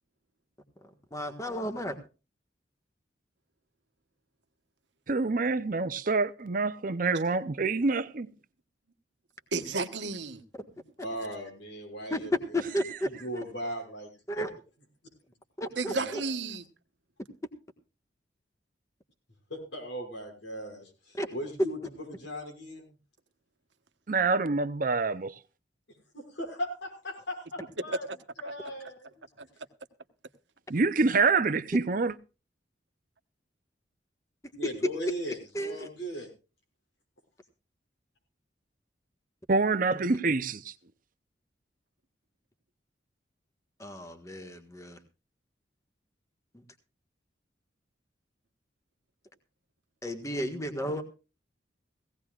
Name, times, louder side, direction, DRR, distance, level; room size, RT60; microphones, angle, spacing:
voice 1, 1.1-1.9 12.1-13.4 14.3-14.5 15.6-16.2 21.2-21.3 34.6-34.9 35.5-35.9 43.8-45.0 50.0-51.0, left 1 dB, 15° left, 1.6 m, -33 dB
voice 2, 5.1-8.3 24.1-25.4 30.7-32.2 39.5-40.7, right 3 dB, 50° right, 0.6 m, -26 dB
voice 3, 9.5-10.4 15.8-16.7 29.4-29.5, right 3 dB, 75° right, 1.2 m, -32 dB
voice 4, 11.0-12.5 13.1-14.1 15.9-16.2 19.5-22.9 26.1-28.1 28.4-29.1 34.5-36.3, right 1 dB, 90° left, 6.1 m, -38 dB
18.0 x 17.0 x 2.4 m
head